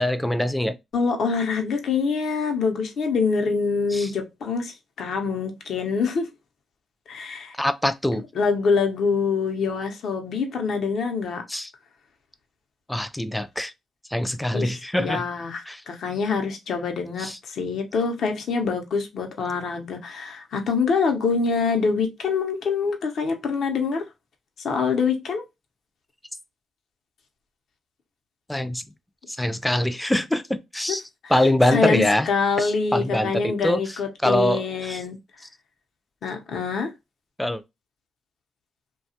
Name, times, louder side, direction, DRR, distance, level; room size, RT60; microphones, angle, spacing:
voice 1, 0.0-0.8 3.9-4.1 7.6-8.2 11.5-11.7 12.9-13.7 14.1-15.2 15.7-15.8 17.2-17.4 28.5-28.8 29.4-31.0 31.3-32.3 32.6-33.8 34.2-35.0 37.4-37.6, left 1 dB, 10° left, 0.4 m, -23 dB
voice 2, 0.9-6.3 7.1-7.5 8.3-11.4 14.5-24.0 24.6-25.4 30.9-31.0 31.7-35.2 36.2-36.9, left 5 dB, 70° left, 0.7 m, -25 dB
2.8 x 2.3 x 2.7 m
supercardioid pair, 60°, 0 cm